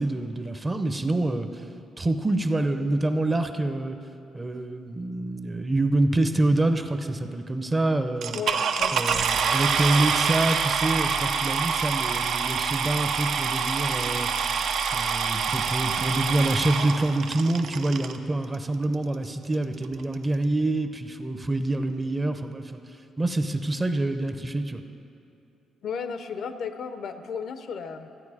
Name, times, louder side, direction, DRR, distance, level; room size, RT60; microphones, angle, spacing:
voice 1, 0.0-1.6 2.0-4.0 4.3-8.4 8.9-14.3 14.9-22.8 23.2-24.8, right 2 dB, 20° right, 8 dB, 0.6 m, -26 dB
sound 1, 8.2-18.2 18.9-19.0 19.5-19.6 19.8-20.1, right 6 dB, 70° right, 0.6 m, -26 dB
voice 2, 8.3-9.3 25.8-28.1, left 6 dB, 65° left, 9 dB, 0.6 m, -34 dB
13.0 x 9.4 x 4.8 m, 2.7 s
cardioid pair, 90°, 0 cm